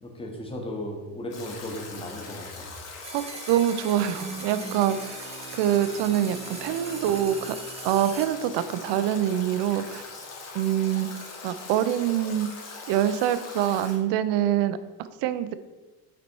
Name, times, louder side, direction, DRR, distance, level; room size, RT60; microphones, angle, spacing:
voice 1, 0.0-2.7, left 1 dB, 15° left, 1 dB, 1.1 m, -36 dB
Stream / Drip / Trickle dribble, 1.3-14.0, left 4 dB, 35° left, 1.6 m, -41 dB
sound 1, 3.0-8.2, right 4 dB, 15° right, 0.5 m, -42 dB
voice 2, 3.1-5.3 5.6-7.6 7.8-10.1 10.5-11.1 11.4-12.5 12.9-15.5, right 11 dB, 75° right, 13 dB, 0.6 m, -25 dB
Bowed string instrument, 4.0-9.1, right 3 dB, 35° right, 1.0 m, -43 dB
6.1 x 4.1 x 4.5 m, 1.2 s
cardioid pair, 145°, 42 cm